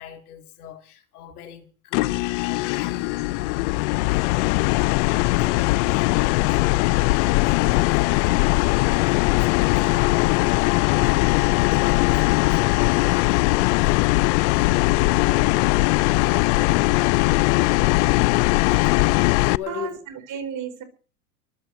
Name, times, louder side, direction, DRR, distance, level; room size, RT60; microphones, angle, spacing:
voice 1, 0.0-10.6 10.9-14.1 16.1-16.6 19.0-19.1 19.4-20.0, left 10 dB, 75° left, 3.5 m, -41 dB
sound 1, 1.9-19.6, left 23 dB, 50° left, 0.6 m, -20 dB
voice 2, 19.7-20.8, right 7 dB, 40° right, 4.5 m, -33 dB
23.5 x 7.9 x 5.6 m
hypercardioid pair, 115°, 45 cm